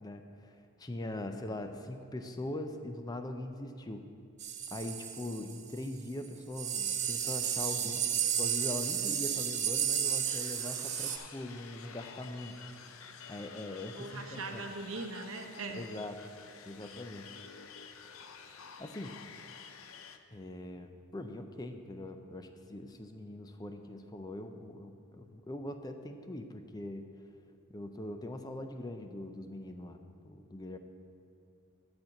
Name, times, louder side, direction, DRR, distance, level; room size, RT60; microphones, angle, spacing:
voice 1, 0.0-4.1 4.7-12.6 13.3-14.6 15.7-16.3 16.7-17.3 18.8-19.2 20.3-27.0 27.7-30.8, left 1 dB, 15° left, 6 dB, 0.4 m, -42 dB
sound 1, 4.4-5.8 6.2-6.3 6.5-11.2, right 8 dB, 30° right, 0.5 m, -33 dB
sound 2, 10.3-20.2, left 6 dB, 70° left, 0.6 m, -50 dB
voice 2, 14.0-15.8, right 3 dB, 65° right, 3 dB, 0.9 m, -40 dB
11.0 x 4.4 x 7.7 m, 2.5 s
head